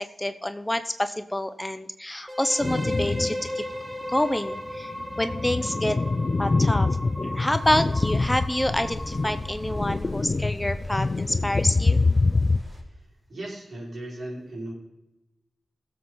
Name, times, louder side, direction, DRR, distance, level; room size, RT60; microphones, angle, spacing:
voice 1, 0.0-3.6 4.1-4.9 5.2-6.0 6.4-6.9 7.2-12.0, left 1 dB, 15° left, 10 dB, 0.8 m, -27 dB
sound 1, 2.3-10.1, left 1 dB, 15° right, 1.7 m, -36 dB
sound 2, 2.6-3.5 3.9-4.0 4.7-12.6, left 3 dB, 50° left, 0.4 m, -25 dB
sound 3, 7.5-12.8, right 1 dB, 45° right, 4.0 m, -41 dB
voice 2, 13.3-14.7, right 1 dB, 75° right, -4 dB, 5.2 m, -36 dB
17.5 x 7.7 x 4.0 m, 0.95 s
cardioid pair, 55°, 0 cm